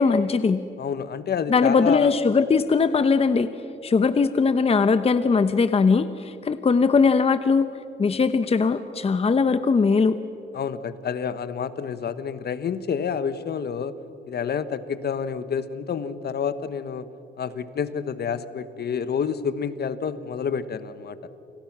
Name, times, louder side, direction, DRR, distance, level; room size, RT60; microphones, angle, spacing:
voice 1, 0.0-0.6 1.5-3.5 3.8-7.7 8.0-10.2, left 5 dB, 30° left, 11 dB, 0.9 m, -20 dB
voice 2, 0.8-2.1 10.5-14.0 14.3-17.1 17.4-21.2, left 7 dB, 55° left, 13 dB, 1.3 m, -28 dB
29.5 x 27.5 x 6.1 m, 2.7 s
cardioid pair, 90°, 20 cm